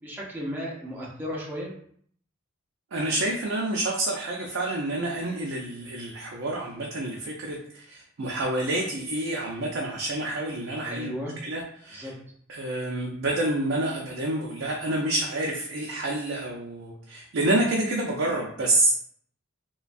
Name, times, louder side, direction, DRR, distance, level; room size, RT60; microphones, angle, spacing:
voice 1, 0.0-1.7 10.8-11.3 11.9-12.1, equal, 10° right, -4 dB, 0.6 m, -34 dB
voice 2, 2.9-12.1 12.5-19.0, right 1 dB, 75° right, -1 dB, 0.5 m, -28 dB
3.1 x 2.2 x 2.5 m, 0.62 s
head